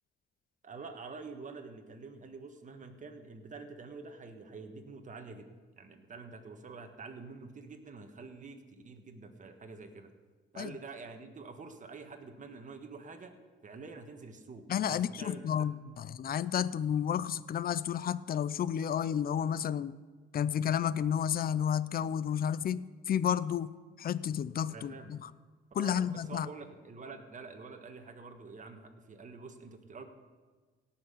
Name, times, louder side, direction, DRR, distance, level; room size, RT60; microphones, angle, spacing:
voice 1, 0.6-5.5 5.8-10.1 10.5-13.3 13.6-15.7 24.7-25.1 25.8-30.1, right 4 dB, 40° right, 6 dB, 1.5 m, -47 dB
voice 2, 14.7-20.0 20.3-25.3 25.7-26.5, left 9 dB, 50° left, 18 dB, 0.5 m, -31 dB
17.5 x 5.8 x 5.6 m, 1.4 s
cardioid pair, 90°, 20 cm